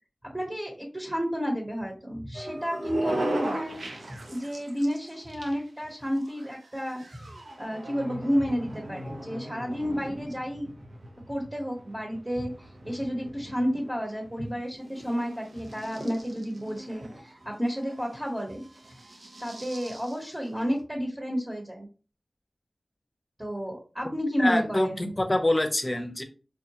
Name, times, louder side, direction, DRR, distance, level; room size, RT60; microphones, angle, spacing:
voice 1, 0.3-3.8 4.1-7.3 7.6-10.7 11.3-18.6 19.4-21.9 23.4-25.1, equal, 20° right, -1 dB, 1.0 m, -31 dB
sound 1, 2.3-20.8, right 1 dB, 85° right, 0.7 m, -40 dB
voice 2, 24.4-26.2, left 1 dB, 25° left, 6 dB, 0.6 m, -25 dB
4.5 x 2.2 x 2.8 m, 0.35 s
wide cardioid pair, 65°, 0 cm